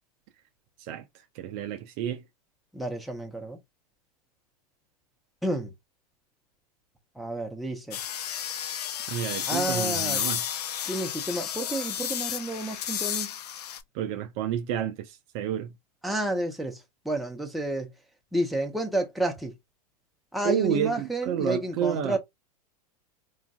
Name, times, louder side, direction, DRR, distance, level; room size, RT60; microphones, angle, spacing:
voice 1, 1.3-2.2 9.1-10.4 13.9-15.7 20.4-22.2, right 10 dB, 45° right, 0.5 m, -30 dB
voice 2, 2.7-3.6 5.4-5.7 7.2-8.0 9.5-10.2 10.9-13.3 16.0-17.9 18.3-19.5 20.3-22.2, right 1 dB, ahead, 0.7 m, -30 dB
sound 1, 7.9-13.8, left 10 dB, 80° left, 0.4 m, -32 dB
3.1 x 2.5 x 2.3 m
hypercardioid pair, 100°, 20 cm